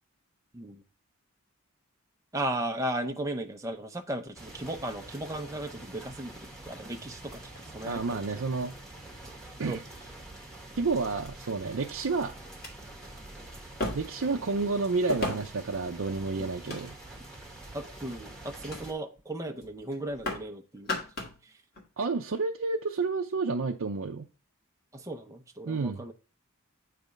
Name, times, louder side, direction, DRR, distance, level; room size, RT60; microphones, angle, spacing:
voice 1, 2.3-8.2 9.7-9.8 17.7-21.0 21.4-21.5 24.9-26.1, right 1 dB, 15° right, 0.6 m, -36 dB
sound 1, 4.3-18.9, right 1 dB, 5° left, 1.2 m, -46 dB
sound 2, 7.0-8.1 9.0-9.1 9.7-10.3 11.2-11.3 12.0-12.1 12.5-12.7 13.8-14.3 15.1-15.7 16.4-17.2 17.8-18.1 18.7-18.9 19.2-19.4 19.6-20.5 20.8-21.4 21.7-21.9, left 2 dB, 45° left, 1.9 m, -36 dB
voice 2, 7.8-8.7 9.6-9.8 10.8-12.3 13.9-16.9 22.0-24.3 25.7-26.0, right 4 dB, 65° right, 0.5 m, -30 dB
8.2 x 3.4 x 5.1 m
head